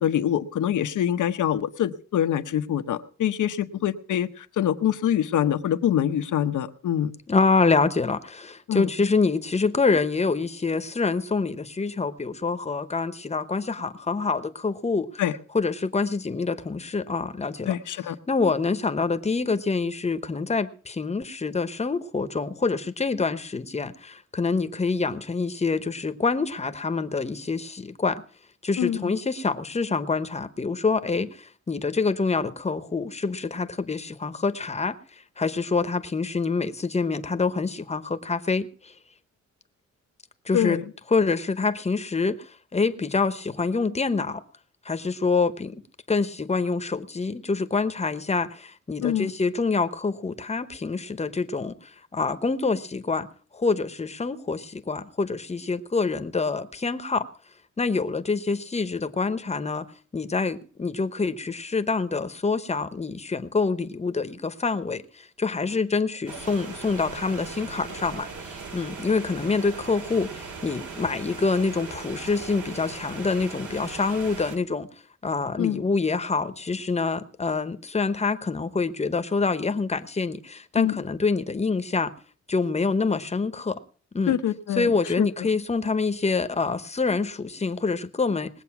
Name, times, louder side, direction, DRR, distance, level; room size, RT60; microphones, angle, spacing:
voice 1, 0.0-7.1 8.7-8.9 15.2-15.3 17.7-18.2 28.8-29.2 40.5-40.8 49.0-49.3 75.6-75.8 80.7-81.0 84.3-84.9 85.2-85.3, left 10 dB, 85° left, 0.9 m, -25 dB
voice 2, 7.3-15.2 15.5-17.8 18.3-28.2 28.6-35.0 35.4-38.9 40.5-40.8 41.1-44.4 44.8-45.8 46.1-53.3 53.5-57.3 57.8-59.9 60.1-74.9 75.2-82.1 82.5-83.8 84.1-84.3 84.7-88.5, left 4 dB, 20° left, 0.9 m, -26 dB
sound 1, 66.3-74.6, right 4 dB, 85° right, 2.5 m, -39 dB
20.0 x 8.1 x 5.9 m
wide cardioid pair, 130°, 30 cm